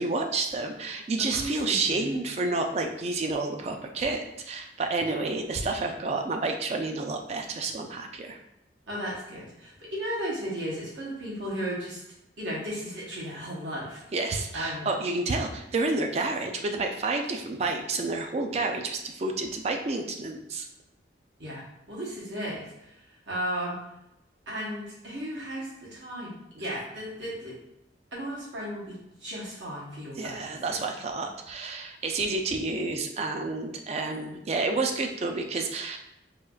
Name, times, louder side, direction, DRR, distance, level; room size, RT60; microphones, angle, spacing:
voice 1, 0.0-8.4 14.1-20.7 26.7-26.8 30.2-36.0, right 3 dB, 35° right, 4 dB, 0.3 m, -30 dB
voice 2, 1.2-2.2 8.9-12.0 12.4-14.0 14.5-14.9 21.4-23.8 24.5-27.5 28.1-30.8, equal, 75° right, -6 dB, 1.0 m, -35 dB
4.3 x 2.4 x 2.3 m, 0.86 s
head